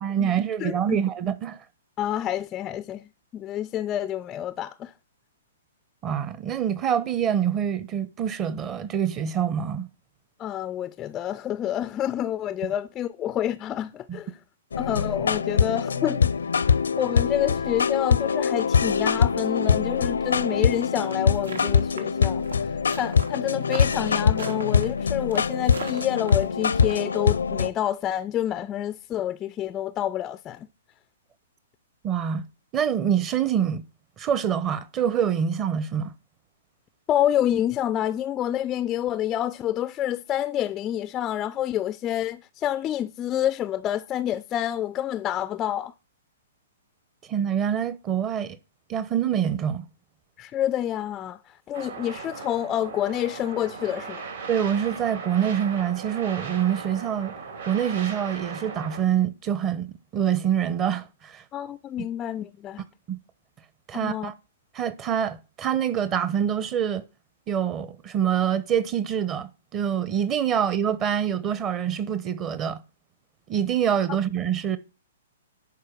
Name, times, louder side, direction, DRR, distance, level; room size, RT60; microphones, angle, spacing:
voice 1, 0.0-1.6 6.0-9.9 14.1-14.2 32.0-32.5 32.7-33.8 34.2-36.1 47.3-48.6 48.9-49.9 54.5-57.3 57.6-61.4 63.1-63.2 63.9-64.3 64.7-67.0 67.5-72.8 73.5-74.8, right 9 dB, 25° right, 0.9 m, -25 dB
voice 2, 0.6-1.0 2.0-4.9 10.4-14.4 14.8-16.3 17.0-30.7 37.1-45.9 50.4-54.3 61.5-62.8 63.9-64.3, left 11 dB, 25° left, 0.4 m, -28 dB
sound 1, 14.7-27.7, left 6 dB, 70° left, 0.6 m, -23 dB
sound 2, 21.0-26.9, right 3 dB, 75° right, 1.9 m, -38 dB
sound 3, 51.7-59.0, right 5 dB, 60° right, 3.5 m, -38 dB
11.0 x 4.8 x 6.0 m
figure-of-eight pair, 115°, 0 cm